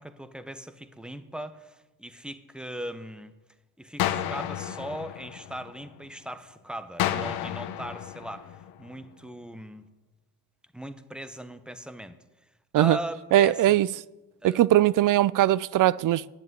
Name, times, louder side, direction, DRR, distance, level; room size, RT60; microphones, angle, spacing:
voice 1, 0.0-3.3 3.8-9.9 10.7-12.2 12.8-13.8 14.4-14.6, equal, ahead, 1.1 m, -39 dB
sound 1, 4.0-6.1 7.0-9.1, left 12 dB, 90° left, 0.9 m, -32 dB
voice 2, 13.3-13.9 14.4-16.3, right 13 dB, 60° right, 0.5 m, -20 dB
10.0 x 7.4 x 9.5 m
cardioid pair, 85°, 37 cm